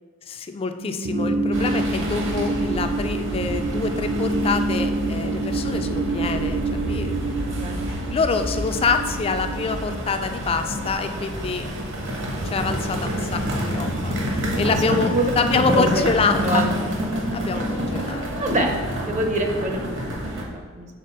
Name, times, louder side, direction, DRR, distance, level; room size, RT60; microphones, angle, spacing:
voice 1, 0.3-7.2 8.1-11.7 12.4-16.7 17.1-18.4, left 4 dB, 30° left, 8 dB, 0.3 m, -26 dB
sound 1, 0.8-10.0, right 2 dB, 90° right, 0.8 m, -27 dB
sound 2, 1.5-20.4, equal, 65° right, 1.2 m, -28 dB
voice 2, 14.8-16.0 16.4-16.7 17.5-17.6 18.4-18.7 19.0-20.9, right 1 dB, 35° right, 3 dB, 0.6 m, -26 dB
5.0 x 3.8 x 5.5 m, 1.5 s
head